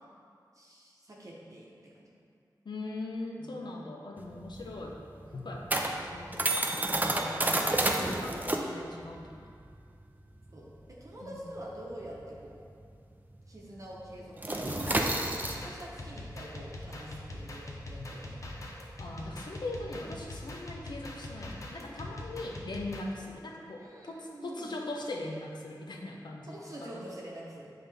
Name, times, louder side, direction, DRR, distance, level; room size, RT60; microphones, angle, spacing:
voice 1, 0.5-2.1 3.4-3.7 5.2-5.5 10.5-12.7 13.5-18.7 23.8-24.8 26.5-27.7, right 1 dB, 45° right, -4 dB, 0.9 m, -47 dB
voice 2, 2.6-5.0 5.3-6.5 7.1-9.5 11.2-11.5 18.0-18.1 19.0-26.6 26.8-27.0, left 2 dB, 80° left, 0 dB, 0.7 m, -40 dB
sound 1, 4.2-13.1 13.4-13.7 14.0-19.7, right 1 dB, 25° right, 0.4 m, -32 dB
sound 2, 14.5-23.0, left 1 dB, 45° left, 0.7 m, -43 dB
7.5 x 3.7 x 3.4 m, 2.3 s
wide cardioid pair, 95°, 7 cm